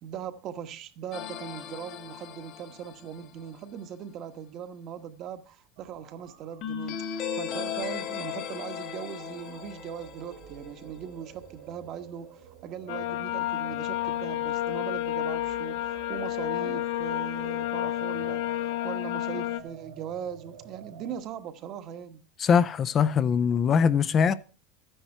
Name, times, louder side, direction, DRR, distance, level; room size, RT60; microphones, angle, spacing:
voice 1, 0.0-22.2, right 9 dB, 40° right, 1.2 m, -40 dB
sound 1, 1.1-3.5 6.6-11.1, left 8 dB, 45° left, 1.7 m, -37 dB
sound 2, 5.8-21.2, right 8 dB, 70° right, 3.2 m, -50 dB
sound 3, 12.9-19.6, left 14 dB, 75° left, 1.1 m, -30 dB
voice 2, 22.4-24.3, left 6 dB, 25° left, 0.6 m, -22 dB
13.5 x 10.0 x 4.5 m
supercardioid pair, 155°, 0 cm